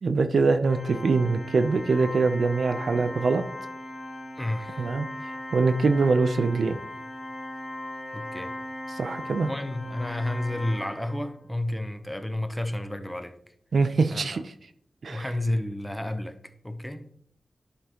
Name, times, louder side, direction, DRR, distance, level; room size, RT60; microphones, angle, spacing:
voice 1, 0.0-3.4 4.8-5.1 5.5-6.8 8.9-9.5 13.7-14.5 15.0-15.3, right 4 dB, 80° right, 0.6 m, -23 dB
Organ, 0.6-11.4, left 1 dB, 40° left, 3.0 m, -38 dB
voice 2, 4.4-4.8 8.1-8.5 9.4-13.3 14.1-14.2 15.1-16.3 16.6-17.0, left 1 dB, 5° left, 0.7 m, -31 dB
11.5 x 5.3 x 3.0 m
wide cardioid pair, 80°, 0 cm